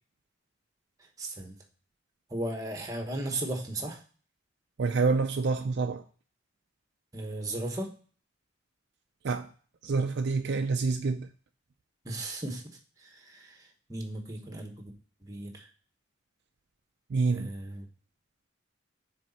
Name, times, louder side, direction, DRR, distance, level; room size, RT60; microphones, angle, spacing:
voice 1, 1.0-1.6 2.3-4.0 7.1-7.9 12.0-14.9 15.2-15.7 17.3-17.9, right 1 dB, 15° right, 1.1 m, -36 dB
voice 2, 4.8-6.0 9.2-9.5 9.8-11.3 17.1-17.5, right 4 dB, 55° right, 0.4 m, -27 dB
6.3 x 4.2 x 4.1 m
head